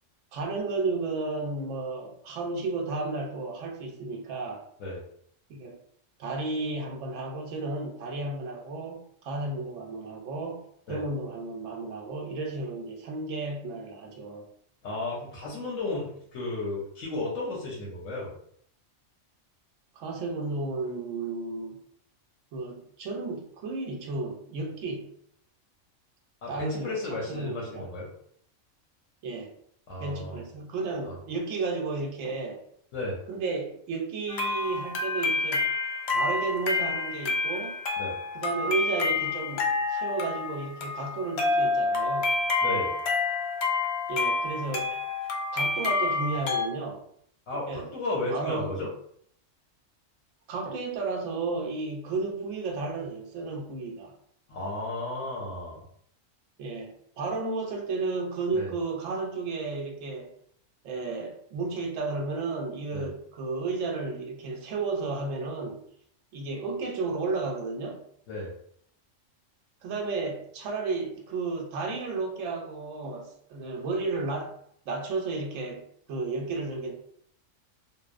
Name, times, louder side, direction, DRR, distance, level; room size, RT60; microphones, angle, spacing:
voice 1, 0.3-4.6 5.5-5.8 6.2-14.5 19.9-21.8 22.5-25.1 26.5-27.9 29.2-29.5 30.0-32.6 33.3-35.7 36.1-37.8 38.3-42.3 44.1-44.9 45.5-47.0 47.7-47.9 48.3-48.8 50.5-54.1 56.6-60.3 60.8-65.8 66.3-68.0 69.8-74.6 74.9-76.9, right 3 dB, 80° right, 0 dB, 0.9 m, -33 dB
voice 2, 14.8-18.3 26.4-28.1 29.9-30.4 31.1-31.2 32.9-33.2 38.0-38.1 42.6-42.9 47.5-48.9 54.5-55.8 58.5-58.7 62.9-63.1 68.3-68.5, left 2 dB, 85° left, -4 dB, 1.1 m, -33 dB
sound 1, 34.3-46.7, left 3 dB, 65° left, 0.7 m, -28 dB
2.9 x 2.0 x 2.4 m, 0.65 s
omnidirectional pair, 1.3 m